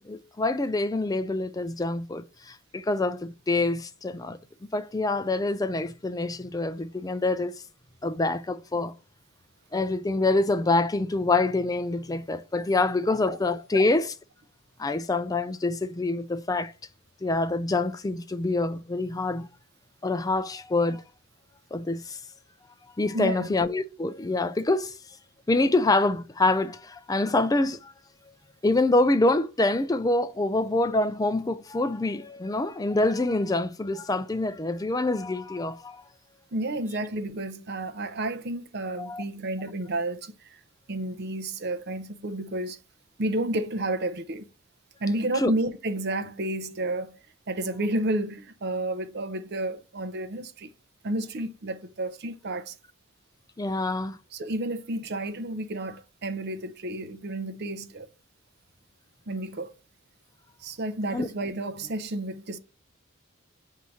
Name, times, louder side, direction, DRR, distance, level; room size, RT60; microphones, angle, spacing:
voice 1, 0.1-4.4 4.7-7.6 8.0-8.9 9.7-14.1 14.8-16.7 17.2-19.5 20.0-21.0 21.7-22.2 23.0-25.0 25.5-27.9 28.6-36.1 39.0-39.2 45.3-45.5 53.6-54.2 61.1-61.3, left 2 dB, 15° left, 0.3 m, -26 dB
voice 2, 23.1-23.5 36.5-40.6 40.9-42.8 43.2-44.5 45.0-47.2 47.5-50.7 51.0-52.8 54.3-58.1 59.3-59.7 60.6-62.6, right 1 dB, 45° right, 0.6 m, -31 dB
7.6 x 2.8 x 5.7 m
head